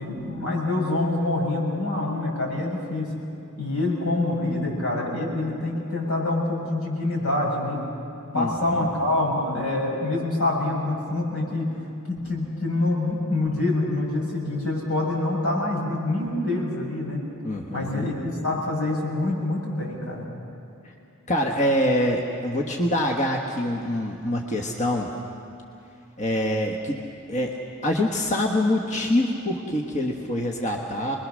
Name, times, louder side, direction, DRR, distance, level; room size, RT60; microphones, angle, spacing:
voice 1, 0.0-3.1 3.6-7.8 8.3-11.7 12.1-17.2 17.7-20.2, left 2 dB, 80° left, -2 dB, 6.4 m, -26 dB
voice 2, 8.3-8.9 17.4-18.1 21.3-25.1 26.2-27.0 27.3-27.6 27.8-31.2, left 1 dB, 35° left, 1 dB, 1.4 m, -25 dB
25.5 x 21.5 x 6.4 m, 2.7 s
head